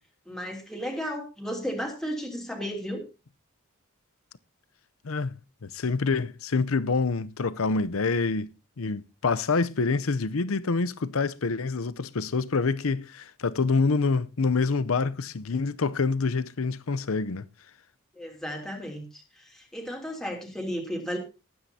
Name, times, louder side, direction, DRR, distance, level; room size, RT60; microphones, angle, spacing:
voice 1, 0.3-3.0 18.1-21.2, equal, ahead, 3.0 m, -34 dB
voice 2, 5.0-5.4 5.6-8.5 8.8-17.4, left 4 dB, 70° left, 0.7 m, -26 dB
19.5 x 9.5 x 2.8 m
head